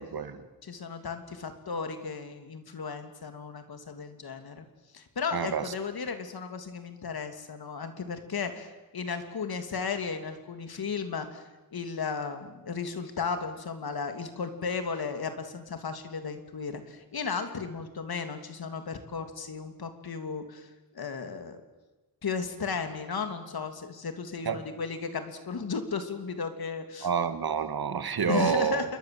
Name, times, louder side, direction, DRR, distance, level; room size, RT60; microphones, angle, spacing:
voice 1, 0.0-0.4 5.3-5.7 24.5-24.6 27.0-28.9, right 7 dB, 80° right, 10 dB, 2.0 m, -28 dB
voice 2, 0.6-4.6 4.9-21.6 22.2-27.1 28.3-29.0, left 5 dB, 85° left, 7 dB, 2.9 m, -35 dB
28.0 x 22.5 x 7.8 m, 1.1 s
wide cardioid pair, 145°, 36 cm